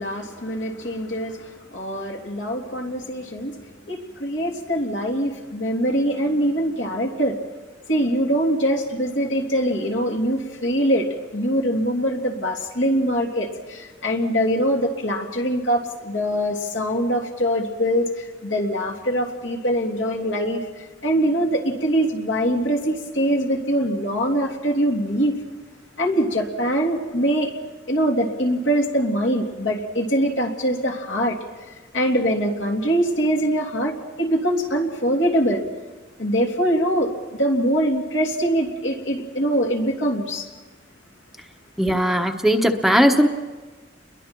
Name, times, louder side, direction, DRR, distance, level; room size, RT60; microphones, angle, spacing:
voice 1, 0.0-3.6 3.9-7.4 7.9-11.1 11.3-25.4 26.0-27.5 27.9-31.4 31.9-35.6 36.2-37.1 37.4-40.5, equal, 70° left, 0 dB, 3.2 m, -23 dB
voice 2, 41.8-43.3, equal, ahead, 4 dB, 1.1 m, -18 dB
30.0 x 22.5 x 4.6 m, 1.3 s
head